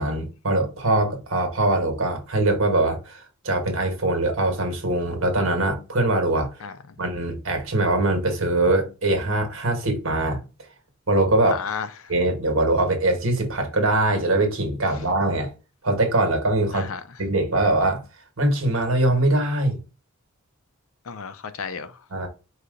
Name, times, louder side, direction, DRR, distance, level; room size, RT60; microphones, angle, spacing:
voice 1, 0.0-6.5 7.0-10.4 11.1-11.6 12.1-15.5 15.8-16.9 17.2-18.0 18.4-19.8 22.1-22.3, right 2 dB, 65° right, 1.6 m, -22 dB
voice 2, 6.6-7.0 11.5-12.1 16.7-17.0 21.0-22.0, left 6 dB, 70° left, 0.6 m, -33 dB
4.8 x 2.9 x 3.8 m
head